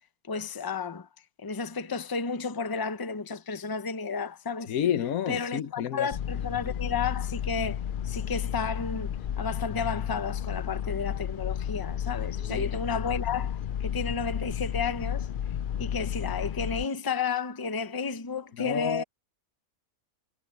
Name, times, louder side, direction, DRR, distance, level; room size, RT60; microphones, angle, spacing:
voice 1, 0.3-1.1 1.4-4.7 5.3-7.8 8.0-15.3 15.8-19.0, left 5 dB, 20° left, 0.7 m, -32 dB
voice 2, 4.7-6.1 12.3-12.7 18.6-19.0, left 9 dB, 85° left, 1.3 m, -30 dB
sound 1, 6.1-16.8, left 9 dB, 70° left, 0.5 m, -32 dB
omnidirectional pair, 1.5 m